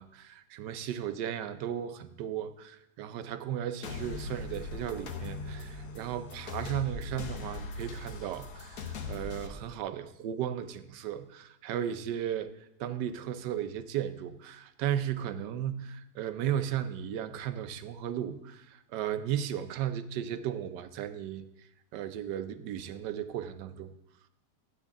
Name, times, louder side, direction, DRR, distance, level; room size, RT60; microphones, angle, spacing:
voice 1, 0.0-12.5 12.8-21.5 21.9-23.9, right 10 dB, 80° right, 11 dB, 1.3 m, -35 dB
sound 1, 3.8-9.5, left 3 dB, 60° left, 1.3 m, -40 dB
12.0 x 8.5 x 3.5 m, 0.84 s
omnidirectional pair, 1.9 m